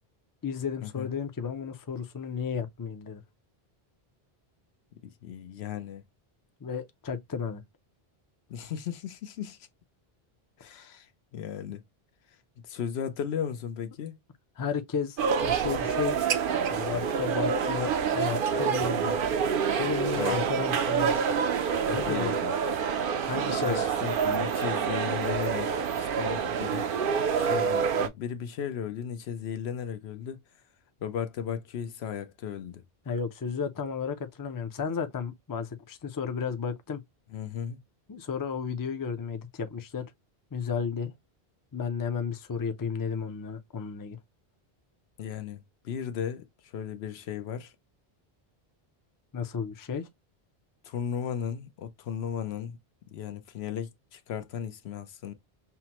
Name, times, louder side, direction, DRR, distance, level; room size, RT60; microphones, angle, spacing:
voice 1, 0.4-3.2 6.6-7.6 10.7-10.9 14.6-16.2 16.7-19.2 19.8-21.2 21.9-22.3 23.2-23.9 33.1-37.0 38.1-40.1 40.5-41.1 41.7-44.2 49.3-50.1, left 6 dB, 30° left, 0.4 m, -33 dB
voice 2, 5.0-6.0 8.5-9.7 10.6-11.8 12.3-14.2 20.2-20.4 21.9-22.5 23.6-26.9 27.3-30.6 31.0-32.8 37.3-37.8 45.2-47.7 50.8-52.8 53.1-55.3, left 8 dB, 85° left, 0.9 m, -36 dB
sound 1, 15.2-28.1, right 6 dB, 65° right, 0.7 m, -27 dB
5.6 x 2.1 x 2.9 m
omnidirectional pair, 1.0 m